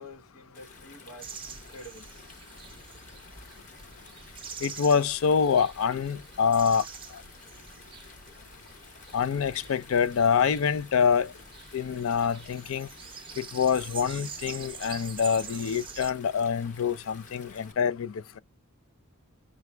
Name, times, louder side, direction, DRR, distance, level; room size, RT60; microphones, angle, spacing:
voice 1, 0.0-2.1, left 1 dB, 90° left, 1.1 m, -48 dB
Stream, 0.5-17.7, left 4 dB, 35° left, 0.8 m, -52 dB
sound 1, 1.2-16.1, right 6 dB, 25° right, 0.5 m, -45 dB
voice 2, 4.6-6.8 7.1-7.2 9.1-11.3 11.7-12.9 13.4-18.4, left 6 dB, 70° left, 0.4 m, -26 dB
5.8 x 2.2 x 3.1 m
head